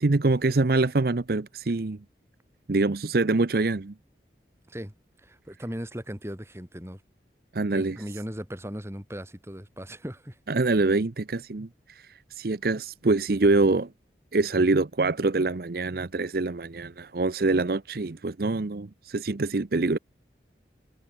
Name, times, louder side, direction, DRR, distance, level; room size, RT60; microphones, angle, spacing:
voice 1, 0.0-2.0 2.7-3.9 7.5-8.0 10.5-13.9 14.3-20.0, right 3 dB, 55° right, 0.7 m, -25 dB
voice 2, 5.2-7.0 7.7-10.4, equal, 15° right, 3.9 m, -37 dB
head